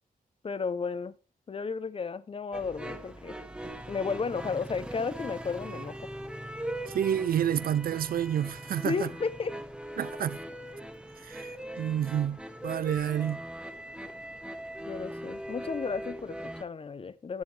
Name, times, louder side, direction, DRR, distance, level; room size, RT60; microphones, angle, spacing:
voice 1, 0.4-1.1 1.5-3.4 3.9-6.1 8.8-9.6 14.8-17.4, left 5 dB, 40° left, 0.6 m, -33 dB
sound 1, 2.5-16.6, right 1 dB, 5° right, 0.9 m, -40 dB
voice 2, 6.9-9.1 10.0-10.4 11.3-11.5 11.8-13.4, right 10 dB, 75° right, 0.4 m, -29 dB
10.5 x 8.3 x 3.3 m
wide cardioid pair, 130°, 15 cm